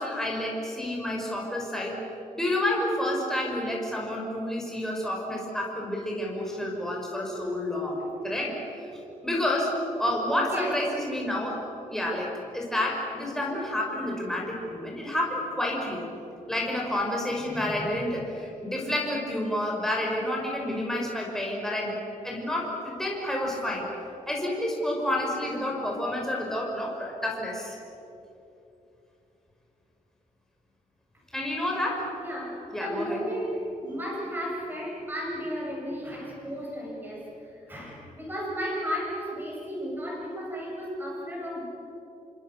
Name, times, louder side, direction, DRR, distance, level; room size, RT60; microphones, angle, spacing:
voice 1, 0.0-2.0 2.3-8.9 9.2-11.6 11.9-16.0 16.5-22.0 22.2-23.9 24.3-27.8 31.3-32.1 32.7-33.2, left 1 dB, 5° left, -2 dB, 5.6 m, -29 dB
voice 2, 10.3-10.8 16.2-16.4 17.4-18.0 32.2-41.7, equal, 15° right, -3 dB, 8.0 m, -34 dB
29.5 x 25.5 x 6.8 m, 2.9 s
wide cardioid pair, 180°, 14 cm